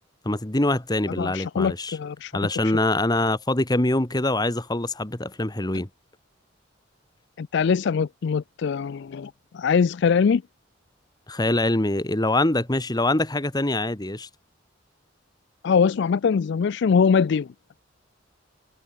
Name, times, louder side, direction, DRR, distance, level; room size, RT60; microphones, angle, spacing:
voice 1, 0.2-2.0 2.3-5.9 11.3-14.3, left 2 dB, 20° left, 1.5 m, -24 dB
voice 2, 1.2-2.3 7.4-10.4 15.6-17.5, left 6 dB, 60° left, 0.4 m, -22 dB
head